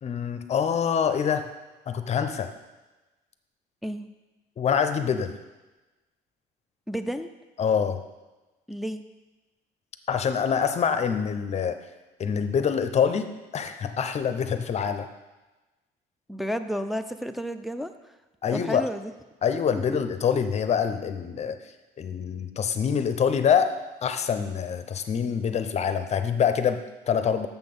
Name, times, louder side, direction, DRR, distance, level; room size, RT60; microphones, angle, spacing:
voice 1, 0.0-1.5 1.9-2.5 4.6-5.3 7.6-8.0 10.1-11.8 12.2-15.1 18.4-18.9 19.4-21.6 22.0-23.7 24.0-27.5, left 7 dB, 40° left, 9 dB, 0.6 m, -25 dB
voice 2, 6.9-7.3 8.7-9.0 16.3-17.9 18.5-19.1 19.9-20.0, equal, ahead, 7 dB, 0.4 m, -31 dB
7.1 x 5.9 x 5.3 m, 1.1 s
cardioid pair, 110°, 17 cm